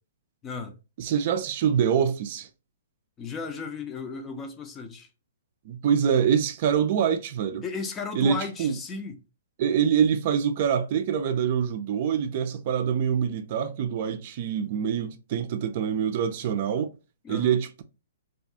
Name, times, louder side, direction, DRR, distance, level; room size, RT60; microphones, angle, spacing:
voice 1, 0.4-0.8 3.2-5.1 7.6-9.2 17.2-17.6, left 4 dB, 20° left, 0.4 m, -35 dB
voice 2, 1.0-2.5 5.7-7.6 8.1-8.8 9.6-16.9 17.3-17.8, right 8 dB, 50° right, 0.3 m, -25 dB
2.4 x 2.2 x 2.7 m
hypercardioid pair, 130°, 0 cm